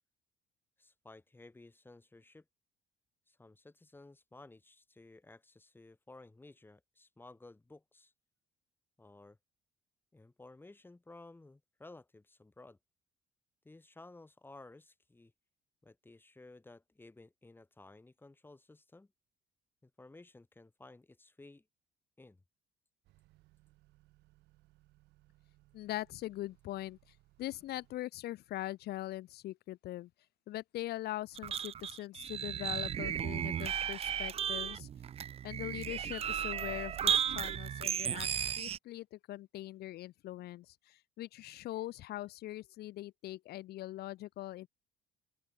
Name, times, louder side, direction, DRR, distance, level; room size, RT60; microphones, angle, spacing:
voice 1, 0.8-2.4 3.3-8.1 9.0-9.4 10.1-12.8 13.6-15.3 15.8-19.1 19.8-21.6 22.2-22.4, left 2 dB, 10° left, 2.3 m, -56 dB
Motor vehicle (road) / Accelerating revving vroom, 23.0-28.0, right 18 dB, 85° right, 7.7 m, -67 dB
voice 2, 25.7-30.1 30.5-34.9 35.4-44.7, left 15 dB, 70° left, 1.1 m, -42 dB
sound 1, 31.3-38.8, right 9 dB, 35° right, 0.5 m, -35 dB
open air
cardioid pair, 110°, 17 cm